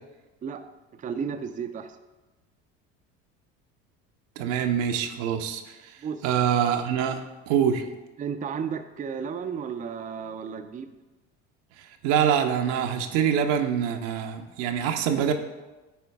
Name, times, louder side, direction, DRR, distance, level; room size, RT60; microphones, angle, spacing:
voice 1, 1.0-2.0 6.0-6.3 8.2-10.9, right 6 dB, 20° right, 8 dB, 0.5 m, -33 dB
voice 2, 4.4-5.8 6.2-7.8 12.0-15.3, right 8 dB, 70° right, 6 dB, 0.8 m, -25 dB
9.1 x 4.5 x 3.5 m, 1.1 s
hypercardioid pair, 70°, 37 cm